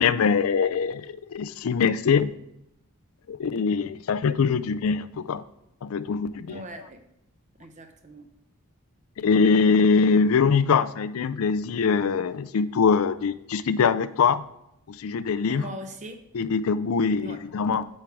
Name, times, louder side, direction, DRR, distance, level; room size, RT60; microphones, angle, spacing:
voice 1, 0.0-2.3 3.3-5.4 5.8-6.6 9.2-14.4 14.9-15.6 16.3-17.9, left 5 dB, 75° left, 15 dB, 0.4 m, -23 dB
voice 2, 6.5-7.0 7.6-8.3 15.5-16.2 17.2-17.4, right 1 dB, 35° right, 6 dB, 0.7 m, -40 dB
8.8 x 4.5 x 4.7 m, 0.82 s
head